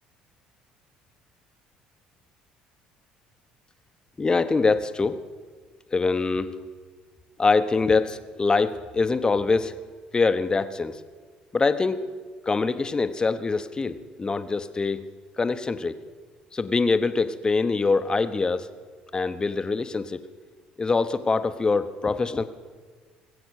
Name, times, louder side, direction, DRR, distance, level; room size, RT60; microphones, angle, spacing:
voice 1, 4.2-5.2 5.9-6.6 7.4-9.8 10.1-11.0 11.5-12.1 12.4-15.1 15.4-16.0 16.5-18.7 19.1-20.2 20.8-22.4, left 4 dB, 25° left, 11 dB, 1.0 m, -24 dB
20.5 x 8.0 x 6.4 m, 1.5 s
supercardioid pair, 70°, 3 cm